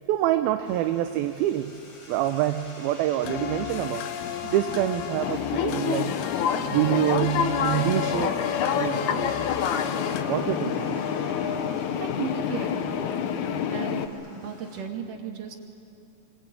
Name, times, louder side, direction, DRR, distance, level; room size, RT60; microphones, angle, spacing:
voice 1, 0.0-1.7 2.1-4.1 4.5-6.2 6.7-8.3 8.7-9.4 10.3-11.0, right 13 dB, 80° right, 7 dB, 2.5 m, -26 dB
sound 1, 0.6-14.8, left 2 dB, 25° left, 3.1 m, -48 dB
sound 2, 3.2-10.2, left 9 dB, 85° left, 3.0 m, -34 dB
sound 3, 5.2-14.1, left 8 dB, 65° left, 2.0 m, -27 dB
voice 2, 12.0-13.2 13.7-15.5, right 6 dB, 55° right, 1 dB, 3.6 m, -36 dB
24.5 x 24.5 x 9.1 m, 2.7 s
omnidirectional pair, 4.6 m